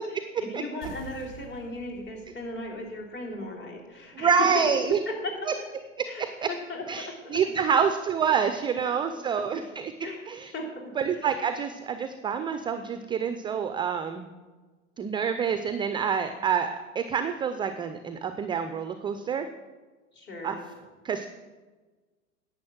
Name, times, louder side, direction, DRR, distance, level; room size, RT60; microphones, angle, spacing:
voice 1, 0.1-4.5 5.1-5.4 6.1-7.4 9.1-9.2 10.0-10.3 10.5-10.9 20.1-20.6, left 2 dB, 25° left, 0 dB, 3.5 m, -37 dB
sound 1, 0.8-5.9, right 1 dB, 50° left, 3.6 m, -50 dB
voice 2, 4.1-5.0 5.5-5.6 6.0-6.5 6.9-10.5 11.0-14.3 15.0-19.5 20.4-20.5 21.0-21.3, right 7 dB, 10° right, 9 dB, 0.4 m, -27 dB
10.5 x 8.7 x 6.1 m, 1.3 s
figure-of-eight pair, 90°, 41 cm